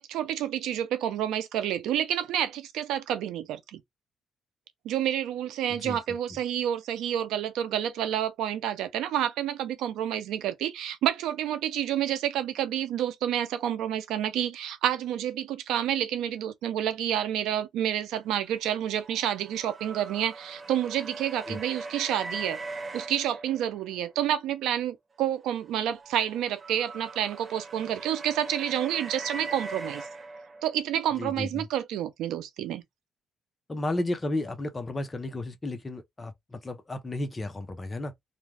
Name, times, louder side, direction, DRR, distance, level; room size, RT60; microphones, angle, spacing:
voice 1, 0.0-3.8 4.8-22.6 22.9-30.1 30.6-32.8, right 10 dB, 85° right, 0.5 m, -29 dB
sound 1, 18.5-24.1 25.5-30.8, right 3 dB, 35° right, 0.6 m, -41 dB
voice 2, 31.2-31.7 33.7-38.1, left 2 dB, 25° left, 0.7 m, -33 dB
2.5 x 2.2 x 3.2 m
cardioid pair, 90°, 0 cm